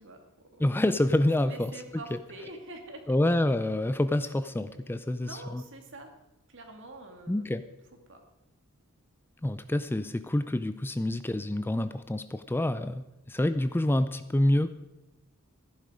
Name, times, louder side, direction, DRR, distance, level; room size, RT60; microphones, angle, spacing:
voice 1, 0.0-0.7 1.4-3.0 5.2-6.1 6.5-7.5 8.1-8.2, right 2 dB, 60° right, 4 dB, 2.3 m, -45 dB
voice 2, 0.6-1.7 2.1-2.2 3.1-5.6 7.3-7.7 9.4-14.7, left 1 dB, 10° left, 12 dB, 0.4 m, -27 dB
15.0 x 11.0 x 4.9 m, 0.92 s
head